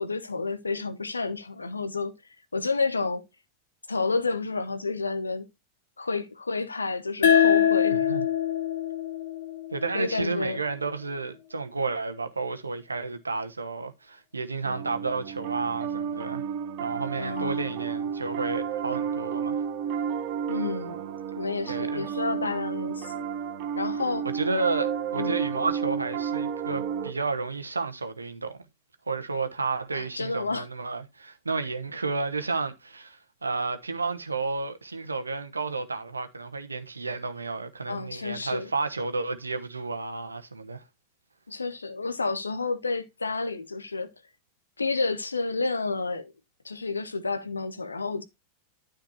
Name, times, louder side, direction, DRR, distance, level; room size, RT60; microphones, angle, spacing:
voice 1, 0.0-2.1 2.5-3.2 3.9-5.5 6.0-8.1 9.9-10.6 17.2-17.7 20.5-21.0 21.4-23.2 23.8-24.3 25.2-25.4 29.9-30.7 37.9-38.7 41.5-44.1 44.8-46.3 46.6-48.2, left 3 dB, 80° left, 0.9 m, -30 dB
sound 1, 7.2-10.4, left 9 dB, 60° left, 1.5 m, -24 dB
voice 2, 7.9-8.2 9.7-16.4 16.8-19.6 21.7-22.1 24.3-28.6 29.1-40.8, right 3 dB, 80° right, 1.0 m, -31 dB
Piano, 14.6-27.1, right 7 dB, 45° right, 1.2 m, -32 dB
12.0 x 5.1 x 2.9 m
figure-of-eight pair, 90°, 0 cm